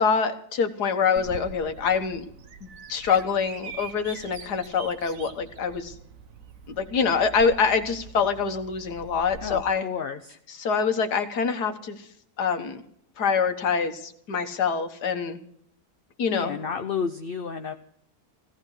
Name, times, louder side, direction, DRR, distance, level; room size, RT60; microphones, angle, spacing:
voice 1, 0.0-2.2 2.6-6.0 6.8-9.9 10.6-12.1 12.4-12.8 13.2-15.4 16.2-16.6, left 6 dB, 85° left, 7 dB, 1.9 m, -25 dB
Bird vocalization bird call bird song, 1.2-9.6, right 6 dB, 60° right, 1.4 m, -43 dB
voice 2, 9.4-10.4 16.3-17.7, left 6 dB, 45° left, 7 dB, 0.8 m, -31 dB
17.0 x 14.5 x 4.9 m, 0.67 s
omnidirectional pair, 1.7 m